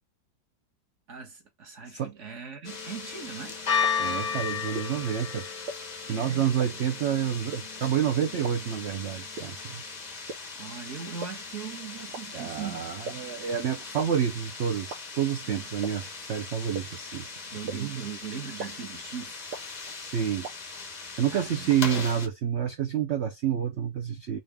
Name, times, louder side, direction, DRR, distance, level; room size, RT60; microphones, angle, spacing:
voice 1, 1.1-3.6 6.1-6.7 10.5-12.9 15.4-15.7 17.5-19.4 21.3-22.0, right 7 dB, 45° right, 1.2 m, -40 dB
sound 1, 2.6-22.3, left 6 dB, 50° left, 0.5 m, -36 dB
sound 2, 3.8-3.9 4.7-4.8 5.7-5.8 6.6-6.7 7.5-7.6 8.4-8.5 9.4-9.5 10.3-10.4 11.2-11.3 12.1-12.2 13.1-13.2 14.0-14.1 14.9-15.0 15.8-15.9 16.7-16.8 17.7-17.8 18.6-18.7 19.5-19.6 20.4-20.5, right 4 dB, 70° right, 1.5 m, -34 dB
voice 2, 4.0-5.5 6.1-9.8 12.3-17.3 17.6-18.1 20.0-20.5 21.2-24.4, right 9 dB, 85° right, 0.6 m, -29 dB
4.0 x 2.4 x 3.4 m
omnidirectional pair, 2.0 m